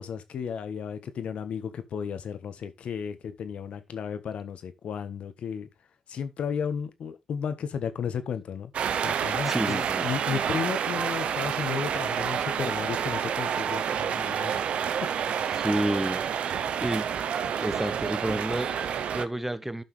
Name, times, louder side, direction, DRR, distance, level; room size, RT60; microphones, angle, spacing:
voice 1, 0.0-5.7 6.1-8.7 9.0-14.6 15.4-15.7, left 7 dB, 75° left, 1.4 m, -34 dB
sound 1, 8.7-19.3, right 8 dB, 80° right, 0.8 m, -29 dB
voice 2, 9.4-10.1 15.5-16.2 16.5-17.1 17.6-19.8, right 1 dB, 10° right, 1.2 m, -30 dB
13.5 x 5.7 x 3.4 m
supercardioid pair, 55°, 2 cm